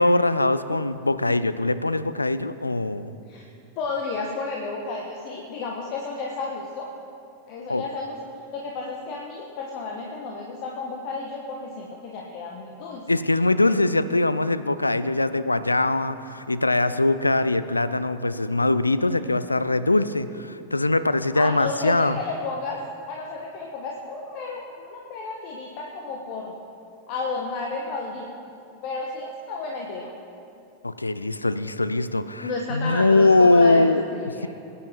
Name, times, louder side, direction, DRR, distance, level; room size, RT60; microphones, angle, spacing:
voice 1, 0.0-3.1 7.7-7.8 13.1-22.2 30.8-34.0, left 2 dB, 80° left, 13 dB, 0.5 m, -22 dB
voice 2, 3.8-6.9 7.5-8.2 8.5-13.0 21.3-22.8 23.1-26.6 27.1-28.3 28.8-30.1 32.4-33.8 34.1-34.5, left 3 dB, 45° left, 0 dB, 1.5 m, -32 dB
21.5 x 9.7 x 4.7 m, 2.6 s
figure-of-eight pair, 90°, 0 cm